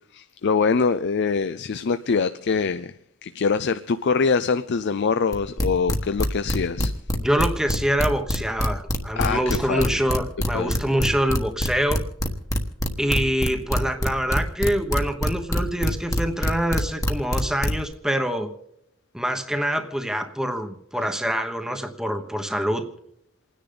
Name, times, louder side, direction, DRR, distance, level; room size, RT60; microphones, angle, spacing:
voice 1, 0.1-2.9 3.2-6.9 9.2-10.0 10.5-10.7 16.4-16.5, left 5 dB, 55° left, 0.5 m, -24 dB
sound 1, 5.3-17.9, equal, 15° left, 1.3 m, -24 dB
voice 2, 7.2-12.0 13.0-18.5 19.1-22.9, equal, 5° right, 1.1 m, -25 dB
28.5 x 10.0 x 3.8 m
head